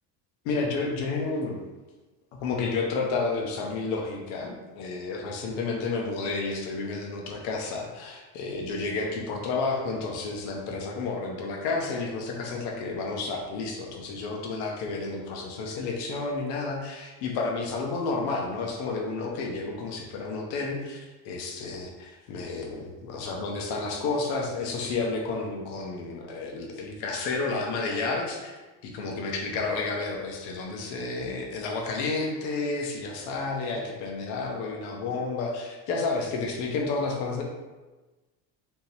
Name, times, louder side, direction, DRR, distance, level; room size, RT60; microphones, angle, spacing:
voice 1, 0.4-1.6 2.4-28.5 28.8-37.4, left 3 dB, 90° left, 1 dB, 0.9 m, -31 dB
4.3 x 3.7 x 2.7 m, 1.2 s
cardioid pair, 160°, 39 cm